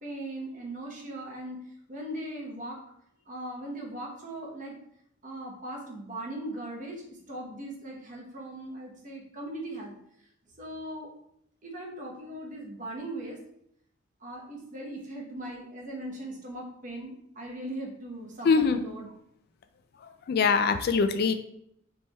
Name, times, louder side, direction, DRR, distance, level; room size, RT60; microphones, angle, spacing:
voice 1, 0.0-1.6 1.9-2.8 3.3-4.8 5.2-9.9 10.6-11.1 11.6-13.4 14.2-19.1, right 1 dB, 40° right, 0 dB, 1.0 m, -39 dB
voice 2, 18.4-18.8 20.0-21.3, left 5 dB, 50° left, 9 dB, 0.3 m, -23 dB
3.3 x 3.3 x 4.0 m, 0.73 s
head